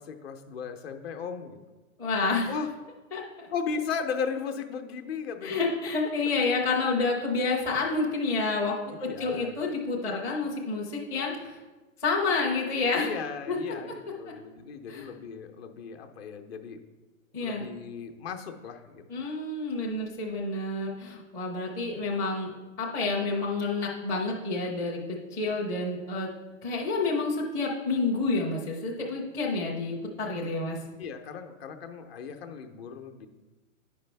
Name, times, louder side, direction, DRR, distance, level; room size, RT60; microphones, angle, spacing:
voice 1, 0.0-1.6 2.5-2.7 3.5-5.6 8.9-9.5 12.9-16.8 17.4-19.0 31.0-33.3, left 6 dB, 45° left, 5 dB, 0.8 m, -36 dB
voice 2, 2.0-2.5 3.1-3.5 5.4-8.7 9.0-11.6 12.0-13.1 13.5-13.6 14.9-15.1 17.3-17.7 19.1-22.5 22.8-26.3 26.6-30.8, left 3 dB, 10° left, -5 dB, 0.5 m, -29 dB
9.7 x 5.1 x 3.4 m, 1.2 s
hypercardioid pair, 135°, 42 cm